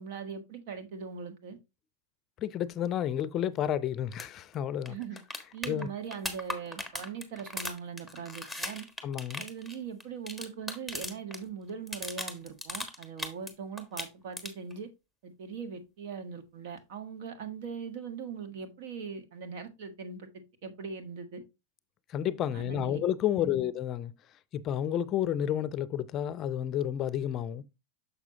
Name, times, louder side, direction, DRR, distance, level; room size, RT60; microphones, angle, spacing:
voice 1, 0.0-1.6 4.9-5.2 5.5-8.8 9.4-14.9 15.2-21.4 22.5-23.0 23.3-23.6, right 6 dB, 60° right, 1.3 m, -41 dB
voice 2, 2.4-5.0 5.7-5.9 9.0-9.4 22.1-24.1 24.5-27.6, left 10 dB, 40° left, 0.5 m, -31 dB
sound 1, 4.1-4.3 4.5-4.6 4.9-11.4 11.7-13.5 13.8-14.7 16.8-16.9, left 1 dB, 5° right, 1.3 m, -38 dB
6.7 x 6.0 x 2.8 m
hypercardioid pair, 105°, 0 cm